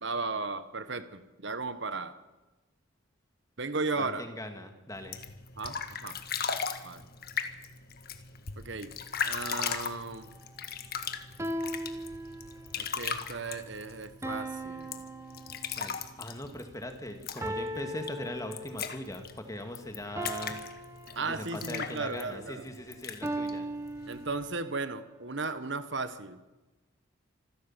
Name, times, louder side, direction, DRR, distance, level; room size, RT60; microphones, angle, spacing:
voice 1, 0.0-2.1 3.6-4.2 5.6-6.2 6.8-7.0 8.6-8.9 9.2-10.3 12.8-15.0 21.1-22.7 24.1-26.4, right 3 dB, 55° right, 12 dB, 1.3 m, -35 dB
voice 2, 4.0-5.2 15.8-20.6 21.2-23.7, left 1 dB, 15° left, 6 dB, 2.2 m, -40 dB
sound 1, 5.0-24.5, left 6 dB, 45° left, 1.6 m, -39 dB
sound 2, 9.4-9.9 11.4-12.9 14.2-16.0 17.4-19.0 20.2-21.8 23.2-24.8, right 1 dB, 15° right, 1.3 m, -38 dB
25.5 x 15.0 x 7.5 m, 1.1 s
head